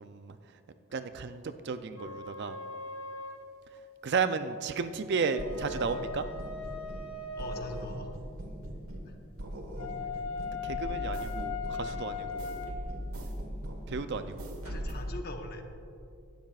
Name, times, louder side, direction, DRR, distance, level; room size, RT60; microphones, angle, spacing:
voice 1, 0.0-0.4 0.9-2.6 4.0-6.2 10.6-12.5 13.9-14.5, right 5 dB, 50° right, 10 dB, 0.4 m, -33 dB
sound 1, 2.0-3.5 5.1-7.9 9.8-12.8, left 5 dB, 75° left, 0.9 m, -39 dB
sound 2, 5.4-7.1 7.4-9.1 9.4-14.9, equal, 70° right, 1.4 m, -40 dB
voice 2, 7.4-8.1 9.1-9.2 14.6-15.6, left 1 dB, 45° left, 4 dB, 0.9 m, -42 dB
16.5 x 12.0 x 2.4 m, 2.5 s
head